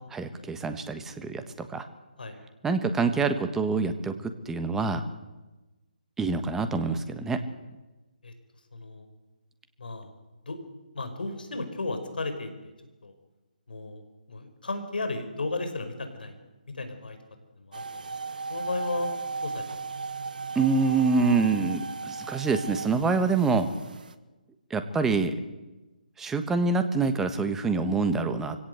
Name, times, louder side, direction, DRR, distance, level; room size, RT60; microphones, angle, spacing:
voice 1, 0.0-1.8 2.6-5.0 6.2-7.4 20.5-23.7 24.7-25.4 26.2-28.6, right 4 dB, 5° right, 9 dB, 1.3 m, -26 dB
voice 2, 8.7-9.1 9.8-10.1 10.5-10.6 10.9-12.7 13.0-13.1 13.7-14.0 14.3-16.3 16.7-17.2 17.6-18.1 18.5-19.1 19.4-19.6, left 2 dB, 75° left, 8 dB, 5.2 m, -34 dB
sound 1, 17.7-24.1, right 4 dB, 65° right, 1.5 m, -36 dB
24.5 x 17.0 x 8.0 m, 1.1 s
figure-of-eight pair, 150°, 5 cm